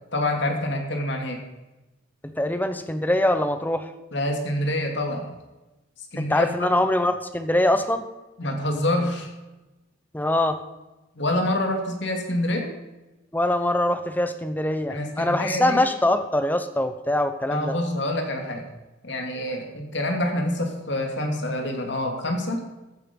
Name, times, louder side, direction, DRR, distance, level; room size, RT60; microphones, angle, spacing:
voice 1, 0.1-1.4 4.1-5.3 6.0-6.7 8.4-9.3 11.2-12.7 14.9-15.8 17.5-18.7 19.0-22.6, left 1 dB, 60° left, 3 dB, 2.6 m, -26 dB
voice 2, 2.2-3.9 6.2-8.0 10.1-10.6 13.3-17.7, left 1 dB, 10° left, 9 dB, 0.8 m, -23 dB
15.0 x 9.3 x 5.4 m, 1.0 s
head